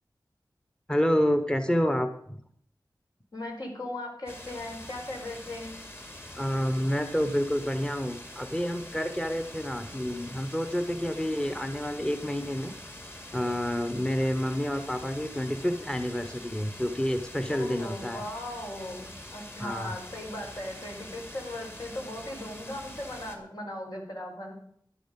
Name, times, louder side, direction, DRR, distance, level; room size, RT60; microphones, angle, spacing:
voice 1, 0.9-2.4 6.3-12.7 13.3-18.2 19.6-19.9, equal, 10° left, 8 dB, 1.0 m, -29 dB
voice 2, 3.3-5.7 17.5-24.5, left 1 dB, 65° left, 0 dB, 4.9 m, -38 dB
sound 1, 4.3-23.4, left 1 dB, 30° left, 2.5 m, -45 dB
12.5 x 11.5 x 5.3 m, 0.65 s
wide cardioid pair, 80°, 8 cm